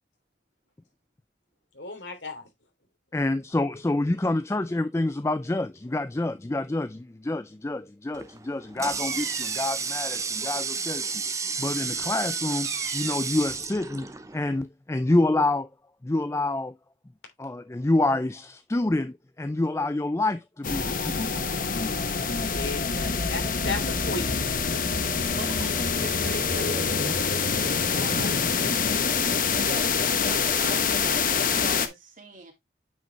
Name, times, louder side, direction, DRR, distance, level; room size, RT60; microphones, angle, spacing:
voice 1, 1.7-2.4 22.5-24.3, left 3 dB, 85° left, 3.2 m, -34 dB
voice 2, 3.1-11.2 11.6-15.7 16.0-16.8 17.4-21.3 27.0-27.1, left 2 dB, 15° left, 0.4 m, -27 dB
Water tap faucet, 8.1-14.6, right 5 dB, 20° right, 0.8 m, -32 dB
Bird vocalization bird call bird song, 8.9-9.9 11.8-13.4, right 8 dB, 85° right, 1.1 m, -40 dB
sound 1, 20.6-31.9, left 5 dB, 50° left, 1.0 m, -25 dB
voice 3, 25.3-28.5 29.6-32.5, right 2 dB, 45° right, 2.7 m, -41 dB
8.9 x 5.3 x 3.2 m
head